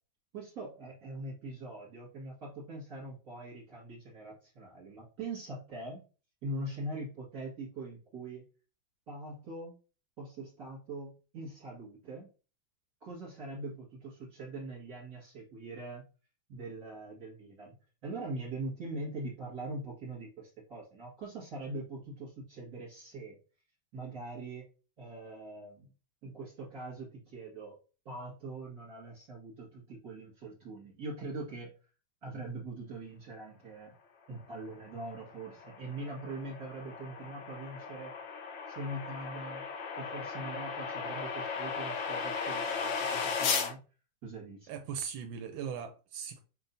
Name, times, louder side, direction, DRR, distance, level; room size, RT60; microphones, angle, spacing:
voice 1, 0.3-6.1 6.4-8.4 9.1-9.7 10.2-12.3 13.0-16.0 16.5-17.7 18.0-23.4 23.9-24.7 25.0-25.9 26.2-27.8 28.1-31.7 32.2-33.9 34.3-38.1 38.7-39.6 40.0-43.8 44.2-44.7, right 2 dB, 50° right, 2.1 m, -42 dB
sound 1, 35.0-43.7, left 5 dB, 75° left, 1.5 m, -36 dB
voice 2, 44.7-46.4, right 7 dB, 85° right, 1.3 m, -39 dB
5.3 x 3.8 x 2.6 m
omnidirectional pair, 2.1 m